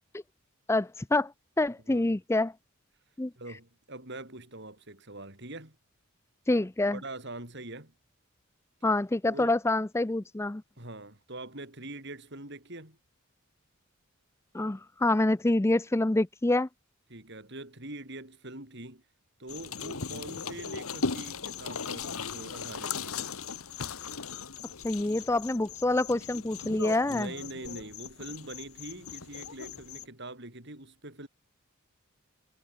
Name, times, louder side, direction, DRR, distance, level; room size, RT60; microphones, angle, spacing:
voice 1, 0.7-1.3 1.6-2.5 3.2-3.3 6.5-7.0 8.8-10.6 14.5-16.7 24.8-27.3, left 2 dB, 10° left, 0.4 m, -26 dB
voice 2, 3.4-5.8 6.9-7.9 9.2-9.5 10.8-13.0 17.1-19.0 19.4-23.2 27.1-31.3, right 2 dB, 55° right, 6.7 m, -43 dB
sound 1, 19.5-30.1, left 5 dB, 90° left, 1.5 m, -38 dB
head